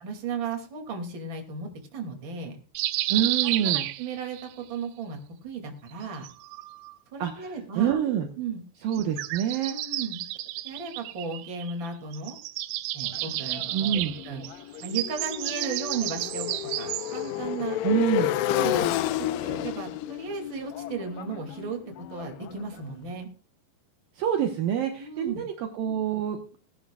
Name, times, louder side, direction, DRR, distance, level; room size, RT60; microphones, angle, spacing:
voice 1, 0.0-2.6 3.4-5.2 5.4-6.3 7.1-8.0 8.4-8.6 9.7-10.3 10.6-12.4 12.9-13.7 13.9-14.4 14.8-16.5 16.7-17.8 18.5-21.8 22.1-23.3 25.0-25.4, right 5 dB, 35° right, 3 dB, 2.7 m, -35 dB
sound 1, 2.8-4.5 5.9-7.0 8.9-11.9 12.1-17.3, right 16 dB, 85° right, 2.9 m, -32 dB
voice 2, 3.1-3.9 7.2-8.3 8.8-9.8 13.7-14.1 17.8-18.3 24.2-26.4, right 9 dB, 70° right, 5 dB, 2.6 m, -26 dB
Motorcycle, 13.1-23.0, left 13 dB, 85° left, 2.9 m, -31 dB
19.0 x 11.0 x 2.4 m, 0.41 s
omnidirectional pair, 4.7 m